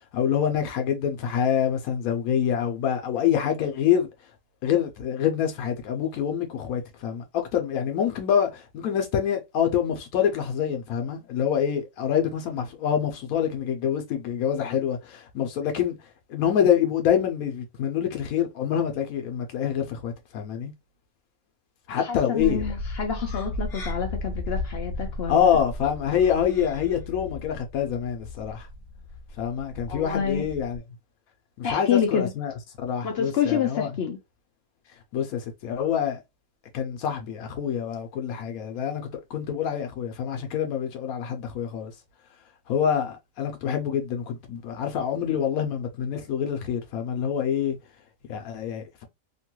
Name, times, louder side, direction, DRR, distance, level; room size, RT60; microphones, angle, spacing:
voice 1, 0.1-4.1 4.6-16.0 16.3-20.7 21.9-22.7 25.3-28.7 29.4-30.8 31.6-32.5 32.8-33.9 35.1-36.2 36.7-41.9 42.7-47.8 48.3-49.0, left 8 dB, 85° left, 1.1 m, -26 dB
voice 2, 21.9-25.6 29.9-30.4 31.6-32.3 33.0-34.2, left 7 dB, 65° left, 0.6 m, -27 dB
sound 1, 22.4-30.8, left 2 dB, 40° left, 1.1 m, -35 dB
2.9 x 2.2 x 2.9 m
omnidirectional pair, 1.5 m